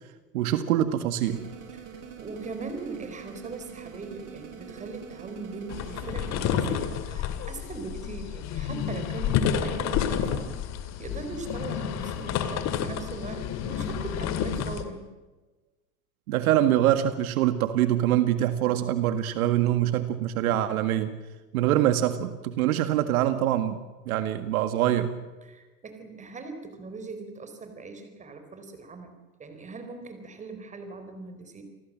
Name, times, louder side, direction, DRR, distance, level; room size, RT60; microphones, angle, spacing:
voice 1, 0.3-1.4 16.3-21.1 21.5-23.8 24.1-25.2, right 12 dB, 70° right, 10 dB, 2.0 m, -24 dB
sound 1, 1.3-6.6, right 7 dB, 40° right, 5.5 m, -44 dB
voice 2, 2.2-10.5 11.0-15.1 25.4-29.1 29.4-31.6, right 3 dB, 15° right, 7 dB, 4.5 m, -40 dB
sound 2, 5.7-14.8, left 8 dB, 35° left, 2.5 m, -30 dB
29.0 x 19.5 x 7.6 m, 1.2 s
supercardioid pair, 145°, 45 cm